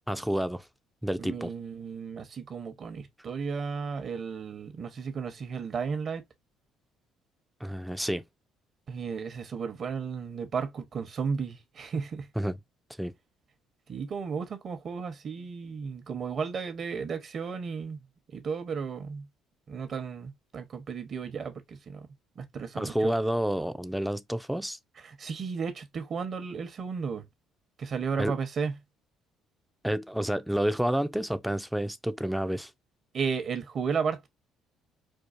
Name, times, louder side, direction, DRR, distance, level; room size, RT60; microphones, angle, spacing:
voice 1, 0.1-0.7 1.0-1.5 7.6-8.2 12.4-12.6 13.0-13.1 22.7-24.8 28.2-28.4 29.8-32.7, equal, ahead, 0.4 m, -29 dB
voice 2, 1.2-6.2 8.9-12.3 13.9-18.0 18.3-19.3 19.7-22.1 22.4-23.1 25.0-27.3 27.8-28.7 33.1-34.3, right 5 dB, 50° right, 0.9 m, -34 dB
4.5 x 2.4 x 2.5 m
supercardioid pair, 80°, 0 cm